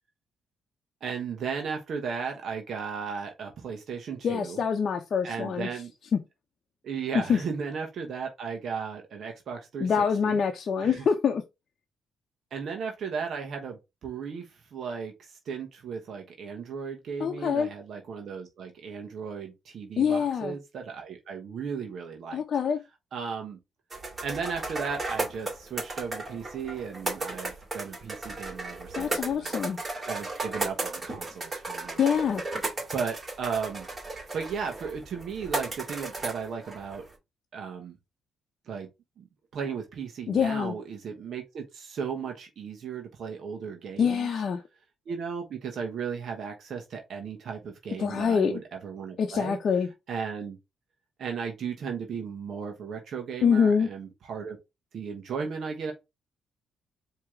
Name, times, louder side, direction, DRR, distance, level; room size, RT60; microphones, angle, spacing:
voice 1, 1.0-4.6 5.2-5.9 6.8-10.4 10.8-11.1 12.5-22.4 23.1-23.6 24.2-29.5 30.0-32.0 32.9-33.9 34.3-37.0 37.5-38.0 38.7-38.9 39.2-39.3 39.5-44.4 45.1-49.6 50.1-50.6 51.2-54.6 54.9-55.9, right 6 dB, 60° right, 1.1 m, -35 dB
voice 2, 4.2-5.7 6.1-6.2 7.3-7.4 9.8-11.4 17.2-17.7 20.0-20.5 22.3-22.8 29.0-29.8 32.0-32.4 40.3-40.7 44.0-44.6 48.0-48.6 49.2-49.9 53.4-53.9, left 6 dB, 55° left, 0.7 m, -25 dB
sound 1, 23.9-37.1, right 2 dB, 30° right, 2.7 m, -35 dB
4.6 x 2.9 x 3.6 m
cardioid pair, 90°, 0 cm